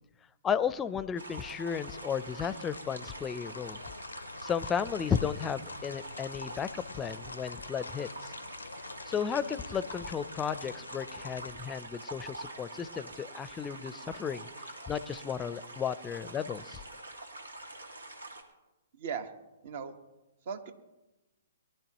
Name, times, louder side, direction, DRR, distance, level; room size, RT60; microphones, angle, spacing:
voice 1, 0.4-3.8 4.4-8.3 9.1-16.8, left 7 dB, 15° left, 15 dB, 0.6 m, -34 dB
sound 1, 1.2-18.4, right 2 dB, 90° right, 2.3 m, -46 dB
sound 2, 1.7-11.5, left 4 dB, 85° left, 0.6 m, -46 dB
voice 2, 19.0-19.3 19.6-20.0 20.4-20.7, right 6 dB, 55° right, 8 dB, 1.6 m, -37 dB
23.0 x 11.5 x 3.1 m, 1.0 s
figure-of-eight pair, 125°, 0 cm